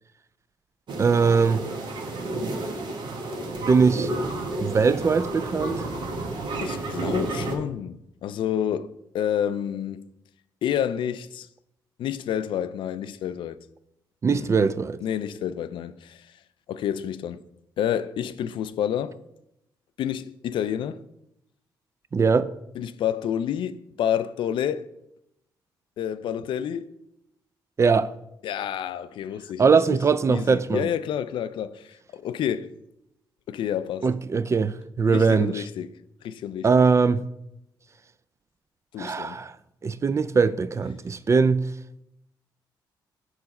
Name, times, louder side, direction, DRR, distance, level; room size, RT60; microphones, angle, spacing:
sound 1, 0.9-7.6, right 2 dB, 60° right, 1.1 m, -31 dB
voice 1, 1.0-1.6 3.7-4.1 4.6-5.8 14.2-15.0 22.1-22.5 27.8-28.1 29.6-30.9 34.0-35.6 36.6-37.2 39.0-39.5 39.8-41.7, right 5 dB, 35° right, 0.4 m, -21 dB
voice 2, 6.6-10.0 10.6-11.5 12.0-13.6 14.3-14.5 15.0-16.3 16.7-17.4 17.8-19.2 20.0-21.0 22.8-24.8 26.0-26.9 28.4-30.0 30.3-32.7 33.5-34.1 35.1-35.9 36.2-36.8 38.9-39.4, left 9 dB, 70° left, 0.3 m, -29 dB
6.5 x 4.7 x 4.2 m
supercardioid pair, 65°, 9 cm